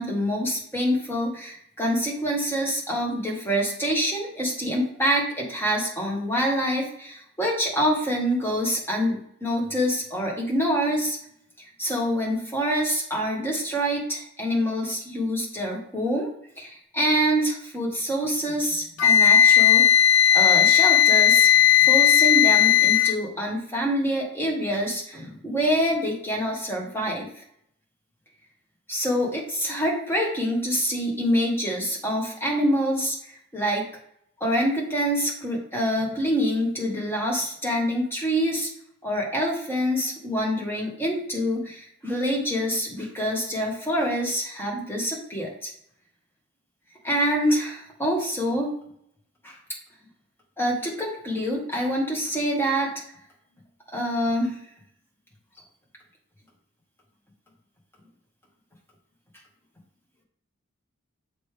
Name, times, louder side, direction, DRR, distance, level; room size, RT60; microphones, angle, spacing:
voice 1, 0.0-11.2 11.8-19.9 20.3-21.5 21.8-27.3 28.9-33.8 34.4-38.7 39.0-45.7 47.0-48.7 49.4-49.6 50.6-52.9 53.9-54.6, equal, 10° left, -3 dB, 1.5 m, -26 dB
Wind instrument woodwind instrument, 19.0-23.2, left 10 dB, 90° left, 0.5 m, -16 dB
6.6 x 4.7 x 3.3 m, 0.68 s
head